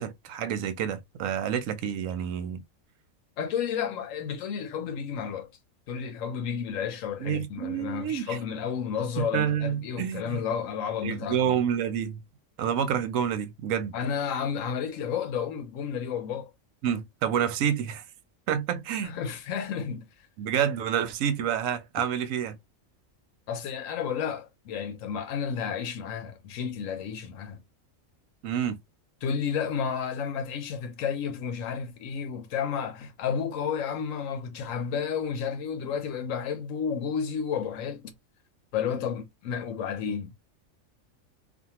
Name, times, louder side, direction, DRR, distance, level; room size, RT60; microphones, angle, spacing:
voice 1, 0.0-2.6 7.2-8.4 9.2-10.4 11.0-12.2 12.6-13.9 16.8-18.0 18.5-19.2 20.4-22.6 28.4-28.8, right 9 dB, 85° right, 1.0 m, -28 dB
voice 2, 3.4-5.5 5.9-11.6 13.9-16.5 19.0-20.1 23.5-27.6 29.2-38.1 38.7-40.3, left 7 dB, 80° left, 1.1 m, -31 dB
2.6 x 2.5 x 2.8 m
omnidirectional pair, 1.4 m